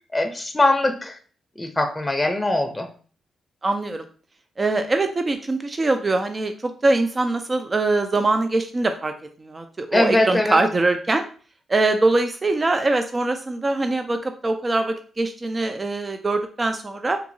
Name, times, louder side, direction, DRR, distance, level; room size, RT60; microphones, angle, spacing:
voice 1, 0.1-1.2 1.6-2.9 9.9-10.6, left 2 dB, 15° left, 5 dB, 0.6 m, -21 dB
voice 2, 3.6-4.0 4.6-9.1 9.4-11.2 11.7-17.2, right 2 dB, 35° right, 7 dB, 0.4 m, -22 dB
3.8 x 2.7 x 2.6 m, 0.41 s
supercardioid pair, 60°, 0 cm